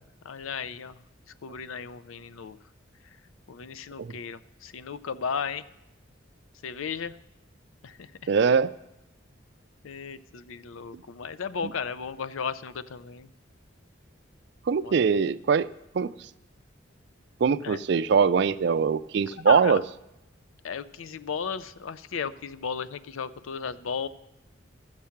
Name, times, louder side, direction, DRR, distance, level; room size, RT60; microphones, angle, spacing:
voice 1, 0.2-0.9 1.4-2.6 3.5-5.6 6.6-7.1 7.8-8.1 9.8-13.3 14.8-14.9 17.6-17.8 19.3-19.8 20.6-24.1, left 6 dB, 80° left, 15 dB, 0.5 m, -35 dB
voice 2, 8.3-8.7 14.7-15.7 16.0-16.1 17.4-19.8, right 6 dB, 55° right, 13 dB, 0.3 m, -22 dB
13.5 x 7.4 x 5.8 m, 0.90 s
head